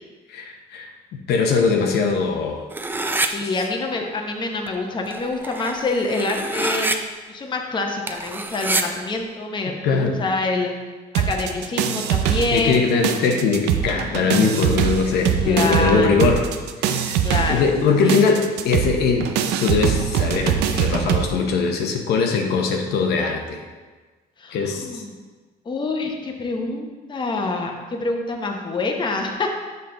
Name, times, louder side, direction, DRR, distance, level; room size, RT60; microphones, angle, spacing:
voice 1, 0.3-0.9 1.3-2.6 3.4-3.5 9.8-10.2 12.5-16.4 16.8-17.2 17.5-19.3 19.6-23.6 24.5-25.0, left 5 dB, 75° left, 2 dB, 0.9 m, -21 dB
sound 1, 2.7-3.3 4.7-4.8 5.0-7.0 8.1-8.8, right 2 dB, 10° right, 0.4 m, -26 dB
voice 2, 3.3-6.9 7.3-10.7 11.1-12.9 15.4-16.2 17.2-17.6 18.0-18.1 24.4-25.1 25.6-29.5, left 3 dB, 25° left, 2 dB, 0.9 m, -26 dB
sound 2, 11.1-12.8 13.0-21.3, right 9 dB, 85° right, 0.5 m, -23 dB
6.7 x 5.5 x 3.8 m, 1.3 s
cardioid pair, 110°, 17 cm